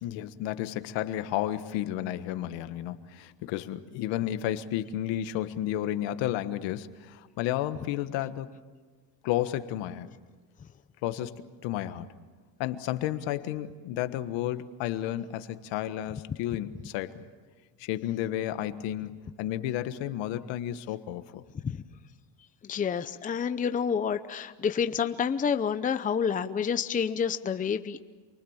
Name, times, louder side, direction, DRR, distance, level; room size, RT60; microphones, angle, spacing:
voice 1, 0.0-8.5 9.2-10.1 11.0-12.1 12.6-17.2 17.8-21.4, left 12 dB, 70° left, 11 dB, 1.5 m, -32 dB
voice 2, 22.6-28.0, left 7 dB, 20° left, 10 dB, 0.7 m, -28 dB
28.5 x 23.5 x 7.3 m, 1.4 s
cardioid pair, 130°, 45 cm